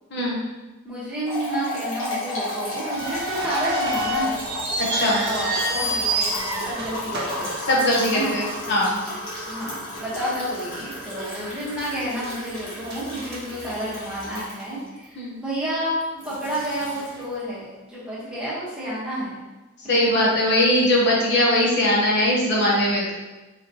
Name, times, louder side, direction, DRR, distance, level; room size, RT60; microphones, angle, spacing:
voice 1, 0.8-4.5 5.0-7.5 8.1-8.4 9.5-15.9 16.2-19.4, right 1 dB, 5° right, -9 dB, 1.1 m, -30 dB
sound 1, 1.2-15.0 16.0-17.4, left 1 dB, 85° left, 1.2 m, -33 dB
sound 2, 3.0-8.3 8.6-8.7 9.4-9.6 10.1-10.2 10.8-11.4 11.7-14.2, right 1 dB, 50° right, 0.7 m, -28 dB
voice 2, 4.8-5.2 7.7-9.0 15.2-15.4 19.9-23.1, left 1 dB, 55° left, -4 dB, 0.7 m, -20 dB
3.9 x 3.0 x 2.7 m, 1.1 s
head